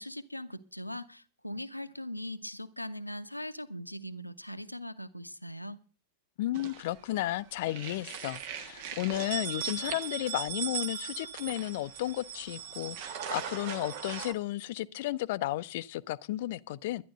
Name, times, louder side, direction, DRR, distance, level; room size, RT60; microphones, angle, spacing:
voice 1, 0.0-5.8, equal, 90° left, 0.7 m, -40 dB
voice 2, 6.4-17.0, left 15 dB, 50° left, 0.5 m, -33 dB
sound 1, 6.5-7.3 7.6-14.3, right 9 dB, 50° right, 1.5 m, -39 dB
11.5 x 11.0 x 6.6 m
figure-of-eight pair, 90°, 0 cm